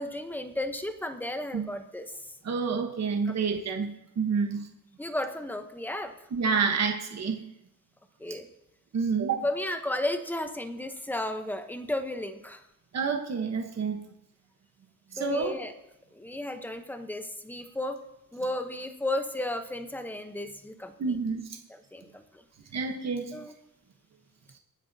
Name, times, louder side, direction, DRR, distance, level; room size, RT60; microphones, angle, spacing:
voice 1, 0.0-2.3 3.3-3.6 5.0-6.1 8.2-8.5 9.4-12.6 15.2-15.7 16.1-18.0 18.3-21.2 21.7-22.4 23.3-23.5, left 1 dB, 5° left, 6 dB, 0.9 m, -34 dB
voice 2, 2.4-4.7 6.3-7.4 8.9-9.4 12.9-14.0 15.2-15.5 21.0-21.4 22.7-23.4, right 5 dB, 50° right, 4 dB, 1.2 m, -28 dB
27.0 x 9.7 x 2.8 m, 0.85 s
wide cardioid pair, 160°, 34 cm